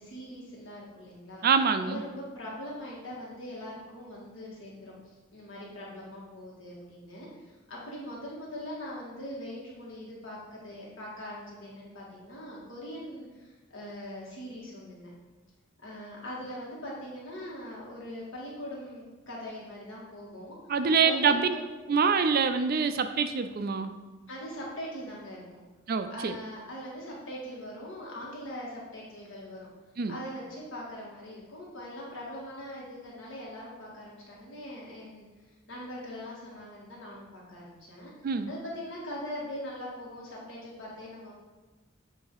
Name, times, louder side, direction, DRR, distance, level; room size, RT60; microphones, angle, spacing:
voice 1, 0.0-1.4 1.8-15.1 15.8-20.6 21.0-21.6 24.3-25.6 26.1-29.7 30.1-35.3 35.7-38.1 38.5-41.3, equal, 70° left, -5 dB, 1.8 m, -41 dB
voice 2, 1.4-2.0 20.7-21.5 21.9-23.9 25.9-26.3 30.0-30.2 38.2-38.5, right 5 dB, 45° right, 9 dB, 0.4 m, -25 dB
8.2 x 2.7 x 4.8 m, 1.2 s
head